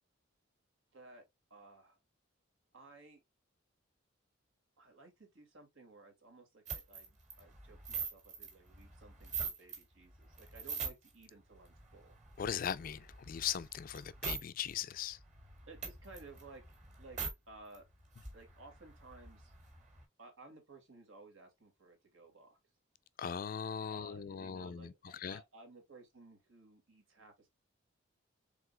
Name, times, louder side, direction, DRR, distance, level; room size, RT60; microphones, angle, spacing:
voice 1, 0.9-1.2 1.5-2.0 2.7-3.2 4.8-12.2 15.7-16.6 17.0-17.2 17.5-17.9 18.3-19.5 20.2-22.6 23.9-27.5, right 3 dB, 80° right, 2.0 m, -57 dB
sound 1, 6.7-9.8 10.2-11.2 11.6-14.4 14.7-14.8 15.1-17.3 17.7-17.8 18.0-20.0, right 5 dB, 35° right, 1.9 m, -43 dB
voice 2, 12.4-15.2 23.2-25.4, left 8 dB, 45° left, 0.3 m, -39 dB
4.8 x 3.7 x 2.2 m
head